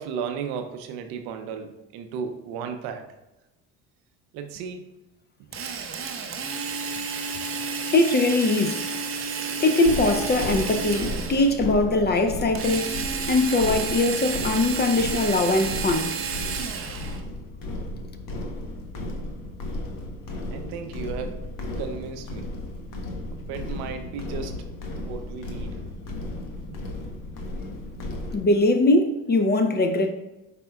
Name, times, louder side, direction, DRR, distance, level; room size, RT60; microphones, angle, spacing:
voice 1, 0.0-3.1 4.3-4.9 20.5-21.4 21.8-22.5 23.3-24.6 25.0-25.8 26.7-26.8, right 6 dB, 75° right, 0.6 m, -34 dB
Drill, 5.5-11.6 12.6-17.2, right 5 dB, 35° right, 0.6 m, -31 dB
voice 2, 7.9-8.8 9.6-12.8 13.3-16.1 28.3-30.1, left 2 dB, 25° left, 0.5 m, -21 dB
sound 1, 9.8-28.4, left 1 dB, 55° left, 1.0 m, -34 dB
5.0 x 3.5 x 2.3 m
supercardioid pair, 70°, 40 cm